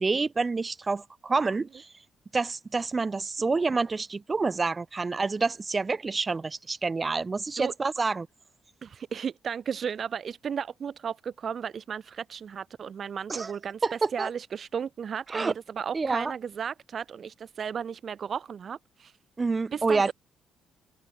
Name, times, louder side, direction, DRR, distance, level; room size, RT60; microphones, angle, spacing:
voice 1, 0.0-1.9 2.3-8.3 13.3-13.5 13.8-14.3 15.3-15.5 15.9-16.3 19.4-20.1, right 4 dB, 30° right, 1.8 m, -28 dB
voice 2, 8.8-19.2 19.7-20.1, right 7 dB, 50° right, 0.4 m, -34 dB
cardioid pair, 90°, 0 cm